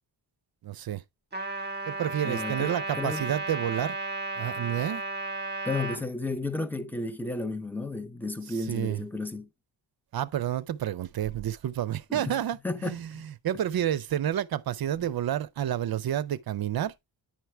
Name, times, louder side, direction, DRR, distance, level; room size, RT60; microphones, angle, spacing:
voice 1, 0.6-1.0 1.9-4.0 4.4-5.0 8.7-9.0 10.1-16.9, right 11 dB, 50° right, 0.6 m, -30 dB
Trumpet, 1.3-6.0, right 2 dB, 20° right, 1.8 m, -34 dB
voice 2, 2.2-3.3 5.6-9.5 12.1-12.4 12.6-13.2, left 2 dB, 5° left, 0.6 m, -33 dB
10.0 x 4.6 x 3.3 m
wide cardioid pair, 145°, 47 cm